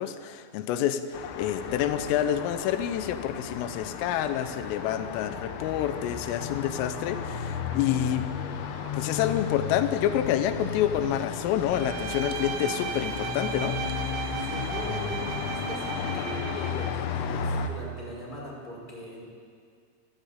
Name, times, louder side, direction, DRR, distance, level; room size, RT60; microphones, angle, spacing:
voice 1, 0.0-8.2 8.9-13.8, left 11 dB, 90° left, 10 dB, 3.5 m, -28 dB
Traffic noise roadway noise, 1.1-17.7, left 6 dB, 70° left, 3.3 m, -34 dB
sound 1, 4.6-11.4, right 1 dB, 40° right, 4.6 m, -49 dB
Bowed string instrument, 11.7-17.1, right 10 dB, 80° right, 2.6 m, -36 dB
voice 2, 14.4-19.3, left 1 dB, 10° left, -3 dB, 4.8 m, -40 dB
25.0 x 14.5 x 8.2 m, 2.2 s
omnidirectional pair, 5.7 m